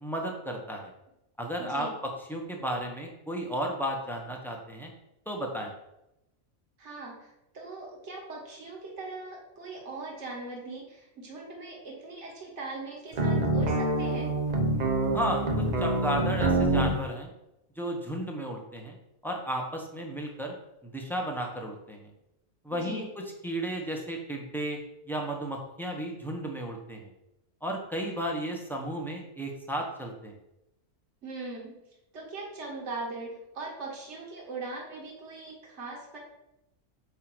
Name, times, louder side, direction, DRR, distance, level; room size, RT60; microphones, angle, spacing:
voice 1, 0.0-0.9 1.4-4.9 5.3-5.7 15.1-17.3 17.8-19.0 19.2-20.5 20.8-22.1 22.6-24.8 25.1-27.0 27.6-30.3, right 1 dB, ahead, 0 dB, 0.9 m, -33 dB
voice 2, 1.6-2.0 6.8-14.4 22.7-23.1 31.2-31.8 32.1-36.2, right 3 dB, 60° right, -1 dB, 1.6 m, -40 dB
sound 1, 13.1-17.0, right 2 dB, 35° right, 0.8 m, -26 dB
8.2 x 2.8 x 6.1 m, 0.89 s
omnidirectional pair, 1.4 m